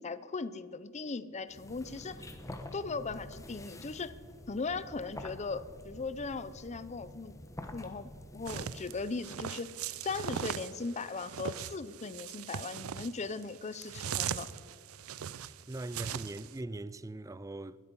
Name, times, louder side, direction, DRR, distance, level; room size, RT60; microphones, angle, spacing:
voice 1, 0.0-2.3 2.7-4.1 4.5-7.4 7.7-9.7 10.0-14.5, left 4 dB, 30° left, 0.6 m, -38 dB
sound 1, 1.5-9.2, left 1 dB, 15° left, 1.2 m, -48 dB
sound 2, 8.5-16.5, right 8 dB, 75° right, 0.5 m, -39 dB
voice 2, 15.7-17.8, right 2 dB, 15° right, 0.4 m, -40 dB
21.0 x 12.5 x 5.4 m
head